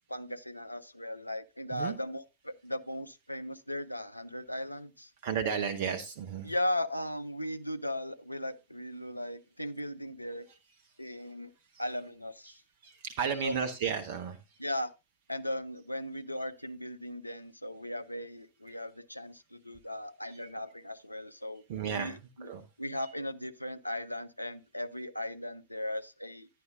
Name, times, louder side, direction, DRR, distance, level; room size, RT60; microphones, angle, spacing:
voice 1, 0.1-5.1 6.4-10.5 11.0-11.5 11.8-12.6 13.4-13.6 14.6-14.9 15.3-21.6 21.9-22.5 22.8-26.5, left 1 dB, 85° left, 0.4 m, -37 dB
voice 2, 5.2-6.5 11.7-11.8 12.5-12.6 12.8-14.4 18.7-18.8 20.3-20.4 21.7-22.6, right 7 dB, 50° right, 0.6 m, -34 dB
11.0 x 9.2 x 2.5 m
figure-of-eight pair, 90°, 0 cm